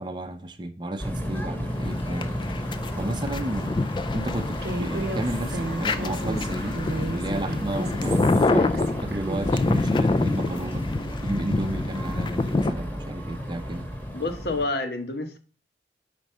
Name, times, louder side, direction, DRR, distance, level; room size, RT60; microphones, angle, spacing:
voice 1, 0.0-2.3 2.6-3.8 4.1-6.8 7.1-10.8 11.2-13.9, right 1 dB, 25° right, 0.6 m, -33 dB
sound 1, 1.0-14.7, equal, 10° left, 1.0 m, -33 dB
sound 2, 1.7-12.7, left 2 dB, 25° left, 0.3 m, -27 dB
Human voice, 4.6-9.8, right 2 dB, 65° right, 0.7 m, -34 dB
voice 2, 14.1-15.4, left 2 dB, 65° left, 0.9 m, -28 dB
5.1 x 4.7 x 5.4 m
head